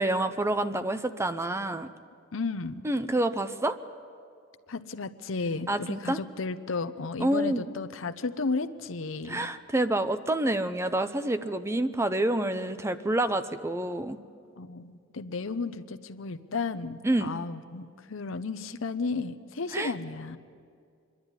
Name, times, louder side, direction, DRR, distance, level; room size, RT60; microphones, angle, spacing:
voice 1, 0.0-1.9 2.8-3.8 5.7-6.2 7.2-7.6 9.3-14.2 17.0-17.3 19.7-19.9, right 1 dB, 15° right, 11 dB, 0.6 m, -28 dB
voice 2, 2.3-2.8 4.7-9.5 14.6-20.4, left 4 dB, 70° left, 11 dB, 0.8 m, -33 dB
25.5 x 11.0 x 9.7 m, 2.3 s
head